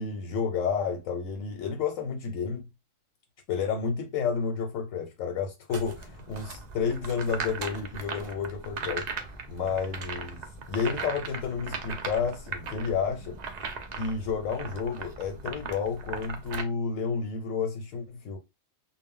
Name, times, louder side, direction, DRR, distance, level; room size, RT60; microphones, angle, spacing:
voice 1, 0.0-2.7 3.5-9.1 9.5-10.4 10.7-13.4 14.0-18.4, left 6 dB, 90° left, 1.0 m, -31 dB
sound 1, 5.7-16.6, right 4 dB, 70° right, 0.4 m, -38 dB
2.0 x 2.0 x 3.6 m
omnidirectional pair, 1.3 m